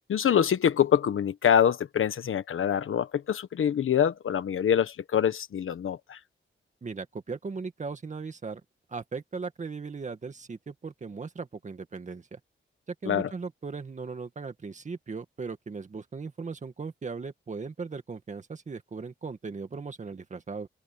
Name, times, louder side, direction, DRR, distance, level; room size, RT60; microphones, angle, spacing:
voice 1, 0.1-6.2 13.0-13.3, left 9 dB, 75° left, 1.3 m, -25 dB
voice 2, 6.8-8.6 8.9-12.4 13.0-20.7, right 4 dB, 35° right, 1.9 m, -38 dB
wide cardioid pair, 165°, 21 cm